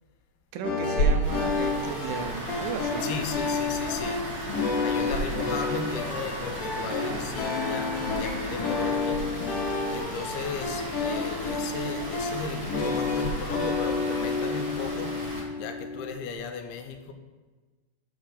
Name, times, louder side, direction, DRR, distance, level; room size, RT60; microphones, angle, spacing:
voice 1, 0.5-3.1, right 6 dB, 85° right, 6 dB, 2.7 m, -34 dB
sound 1, 0.6-16.1, left 3 dB, 60° left, 1.7 m, -29 dB
Water, 1.2-15.4, equal, 50° right, 1.3 m, -38 dB
sound 2, 2.1-9.0, right 2 dB, 70° right, 1.8 m, -41 dB
voice 2, 3.0-4.2 4.8-9.3 9.9-17.1, left 5 dB, 80° left, 5 dB, 2.4 m, -36 dB
8.4 x 3.5 x 6.5 m, 1.3 s
omnidirectional pair, 4.4 m